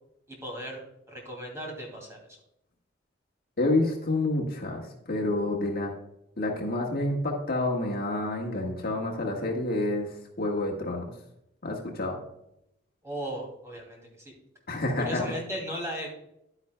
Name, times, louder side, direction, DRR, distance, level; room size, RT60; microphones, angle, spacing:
voice 1, 0.3-2.4 13.0-14.3 15.0-16.1, equal, 15° right, -1 dB, 2.5 m, -37 dB
voice 2, 3.6-5.9 6.4-11.0 11.6-12.2 14.7-15.2, left 2 dB, 50° left, 0 dB, 1.5 m, -28 dB
10.5 x 9.5 x 2.2 m, 0.80 s
head